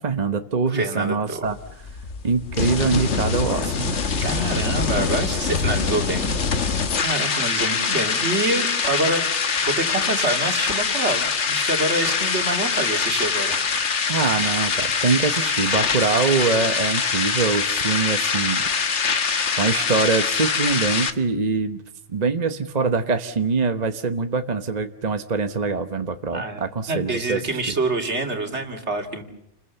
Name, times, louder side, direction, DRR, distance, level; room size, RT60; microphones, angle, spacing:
voice 1, 0.0-1.6 2.2-4.0 14.1-19.2 19.5-21.8 22.1-27.6, right 4 dB, 35° right, 7 dB, 1.1 m, -24 dB
voice 2, 0.7-1.5 4.2-6.3 7.0-9.3 9.7-13.6 26.3-29.2, right 2 dB, 65° right, 4 dB, 3.0 m, -26 dB
sound 1, 1.4-21.1, left 5 dB, 70° left, 1.6 m, -24 dB
29.0 x 21.5 x 7.1 m, 0.82 s
omnidirectional pair, 1.3 m